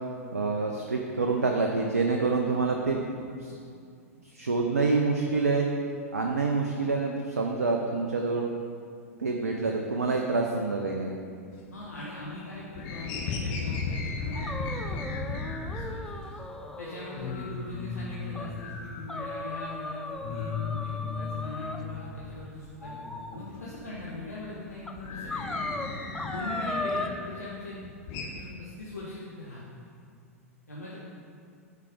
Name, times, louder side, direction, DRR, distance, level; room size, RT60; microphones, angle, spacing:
voice 1, 0.3-3.0 3.4-3.6 4.3-5.7 6.1-8.5 9.2-11.2, right 3 dB, 85° right, 1 dB, 0.6 m, -27 dB
sound 1, 11.5-12.3 12.5-16.0 16.4-16.5 16.8-16.9 17.1-19.6 19.9-22.5 22.8-27.2 27.6-28.3, left 4 dB, 45° left, 1.2 m, -36 dB
voice 2, 11.7-16.2 16.8-22.9 23.3-25.6 26.3-28.0 28.2-29.6 30.7-31.0, left 2 dB, 90° left, -8 dB, 1.2 m, -41 dB
sound 2, 14.4-17.3 17.7-17.8 18.4-18.5 19.1-21.8 22.8-23.4 24.2-24.3 24.9-25.0 25.3-27.1, left 2 dB, 5° left, 0.4 m, -37 dB
8.3 x 4.6 x 5.0 m, 2.3 s
figure-of-eight pair, 95°, 8 cm